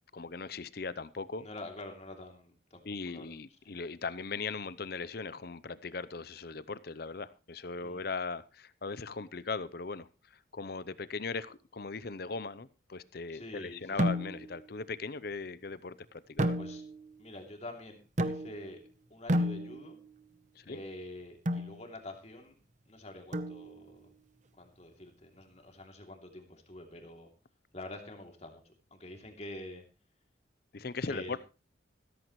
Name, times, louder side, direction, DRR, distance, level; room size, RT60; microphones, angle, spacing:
voice 1, 0.1-1.5 2.8-16.6 20.6-20.8 30.7-31.4, left 4 dB, 55° left, 17 dB, 0.7 m, -39 dB
voice 2, 1.3-3.3 7.8-8.1 13.3-14.0 16.6-16.8 17.2-18.8 19.1-20.0 20.7-22.6 22.9-24.1 24.5-27.3 27.7-29.8 31.1-31.4, left 1 dB, 35° left, 3 dB, 2.9 m, -47 dB
sound 1, 14.0-14.6 16.4-17.1 18.2-18.8 19.3-20.1 21.5-21.8 23.3-23.9, equal, 40° right, 0.9 m, -32 dB
15.5 x 14.0 x 3.2 m, 0.32 s
head